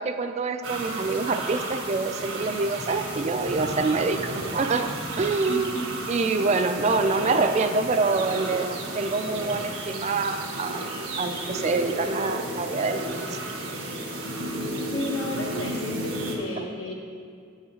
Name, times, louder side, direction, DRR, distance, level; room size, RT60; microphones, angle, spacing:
voice 1, 0.0-5.7 6.1-13.2, right 3 dB, 35° right, 8 dB, 0.3 m, -26 dB
sound 1, 0.6-16.4, right 1 dB, 90° right, 1.3 m, -33 dB
voice 2, 14.9-16.9, left 1 dB, 90° left, -1 dB, 1.4 m, -32 dB
8.7 x 4.8 x 5.5 m, 2.2 s
head